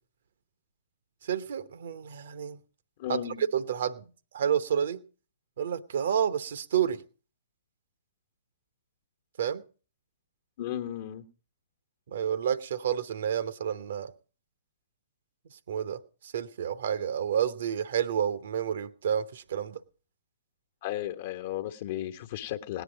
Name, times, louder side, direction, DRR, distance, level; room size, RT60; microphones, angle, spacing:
voice 1, 1.2-2.6 3.1-4.0 4.3-5.0 5.6-7.0 9.4-9.6 12.1-14.1 15.7-19.8, right 8 dB, 60° right, 0.9 m, -30 dB
voice 2, 3.0-3.4 10.6-11.2 20.8-22.8, left 12 dB, 45° left, 1.2 m, -34 dB
18.0 x 10.0 x 5.1 m
figure-of-eight pair, 120°, 0 cm